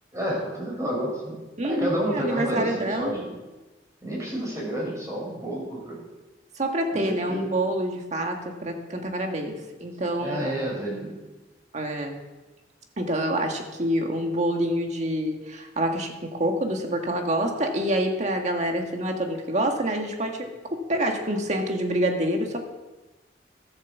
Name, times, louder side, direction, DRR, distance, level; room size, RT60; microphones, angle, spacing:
voice 1, 0.1-3.4 4.0-6.0 6.9-7.4 10.2-11.2, right 1 dB, 15° right, -4 dB, 5.4 m, -30 dB
voice 2, 1.6-3.1 6.6-10.5 11.7-12.1 13.0-22.6, right 1 dB, 40° right, 3 dB, 1.8 m, -27 dB
13.5 x 8.1 x 7.3 m, 1.1 s
head